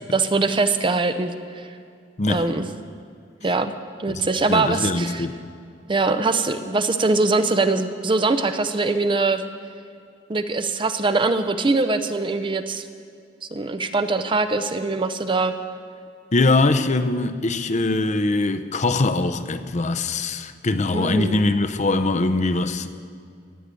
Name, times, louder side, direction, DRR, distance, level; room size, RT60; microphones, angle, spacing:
voice 1, 0.1-1.7 2.3-2.7 3.4-3.7 4.0-5.3 5.9-9.4 10.3-12.8 13.5-15.5 20.9-21.4, right 3 dB, 25° right, 0.6 m, -22 dB
voice 2, 4.5-5.4 16.3-22.9, left 2 dB, 40° left, 0.7 m, -22 dB
15.0 x 9.0 x 8.3 m
head